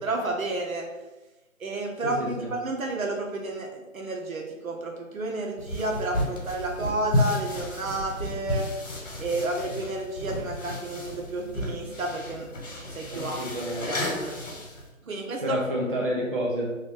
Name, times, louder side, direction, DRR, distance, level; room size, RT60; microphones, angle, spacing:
voice 1, 0.0-0.9 1.6-8.7 9.2-12.5 12.9-13.4 13.9-14.4 15.0-15.6, right 2 dB, 80° right, 2 dB, 0.9 m, -31 dB
voice 2, 2.0-2.5 13.1-13.9 15.4-16.8, equal, 45° right, -3 dB, 0.4 m, -29 dB
sound 1, 5.6-14.9, left 1 dB, 65° left, 1.2 m, -32 dB
2.9 x 2.3 x 3.2 m, 1.1 s
hypercardioid pair, 175°, 41 cm